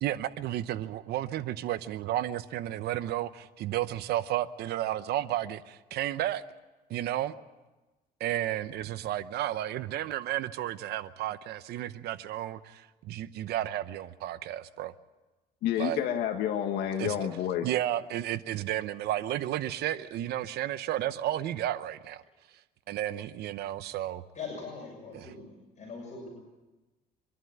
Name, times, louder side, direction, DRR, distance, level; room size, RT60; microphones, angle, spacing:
voice 1, 0.0-6.4 6.9-7.4 8.2-14.9 15.8-16.0 17.0-17.2 17.6-22.2 22.9-24.2 25.1-25.3, right 13 dB, 75° right, 0.8 m, -32 dB
voice 2, 15.6-17.7, left 10 dB, 80° left, 1.7 m, -29 dB
voice 3, 24.3-26.3, left 4 dB, 45° left, 6.3 m, -41 dB
24.0 x 11.5 x 9.6 m
cardioid pair, 110°, 17 cm